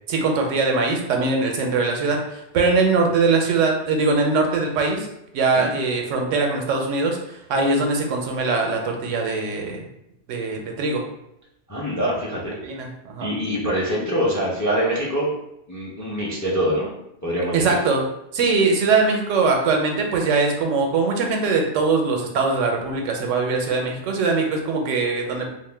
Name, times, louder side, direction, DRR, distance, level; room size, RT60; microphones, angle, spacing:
voice 1, 0.1-5.1 5.3-9.8 10.3-11.0 12.6-13.3 17.5-18.1 18.3-25.5, right 4 dB, 85° right, 2 dB, 0.9 m, -21 dB
voice 2, 11.7-12.5 13.2-15.3 15.7-16.9 17.2-17.8, equal, 30° left, -5 dB, 0.3 m, -24 dB
2.5 x 2.1 x 3.2 m, 0.82 s
omnidirectional pair, 1.2 m